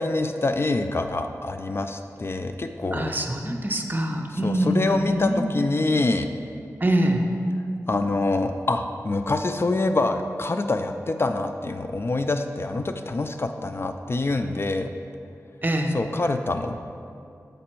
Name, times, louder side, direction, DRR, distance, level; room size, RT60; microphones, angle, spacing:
voice 1, 0.0-3.1 4.3-6.3 7.9-14.9 15.9-16.7, left 2 dB, 45° left, 7 dB, 0.4 m, -25 dB
voice 2, 2.9-5.4 6.8-7.2 15.6-15.9, right 1 dB, 35° right, 3 dB, 0.7 m, -24 dB
7.5 x 5.1 x 4.4 m, 2.5 s
wide cardioid pair, 75°, 6 cm